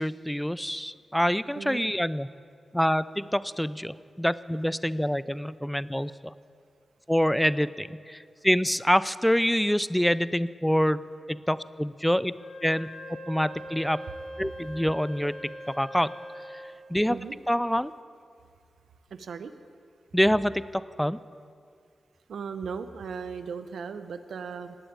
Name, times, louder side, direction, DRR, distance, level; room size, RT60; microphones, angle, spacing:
voice 1, 0.0-2.3 2.7-6.3 7.1-12.3 12.6-12.9 13.3-14.0 14.4-15.4 15.7-16.1 16.5-16.6 16.9-17.2 17.5-17.9 20.1-21.2, equal, 5° left, 17 dB, 0.5 m, -26 dB
voice 2, 1.6-1.9 17.1-17.4 19.1-19.5 22.3-24.8, right 6 dB, 85° right, 11 dB, 0.8 m, -37 dB
Wind instrument woodwind instrument, 12.3-16.8, equal, 80° left, 5.0 m, -41 dB
18.5 x 8.7 x 8.7 m, 2.3 s
cardioid pair, 65°, 0 cm